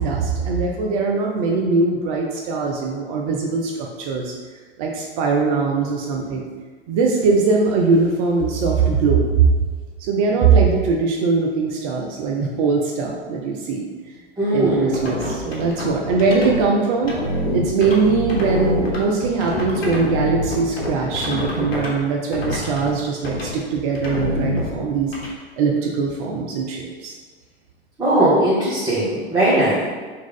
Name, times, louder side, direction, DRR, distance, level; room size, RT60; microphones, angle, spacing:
voice 1, 0.0-4.3 4.8-6.4 6.9-9.5 10.0-13.8 14.5-17.2 17.5-25.1 25.5-27.1, right 4 dB, 35° right, 0 dB, 0.5 m, -21 dB
voice 2, 14.4-15.0 28.0-29.8, right 1 dB, 10° right, -13 dB, 1.4 m, -18 dB
sound 1, 14.7-16.6 17.0-22.0 22.3-22.9 23.2-23.5 23.9-25.3, left 1 dB, 65° left, 1.2 m, -26 dB
3.7 x 3.0 x 3.8 m, 1.4 s
figure-of-eight pair, 95°, 33 cm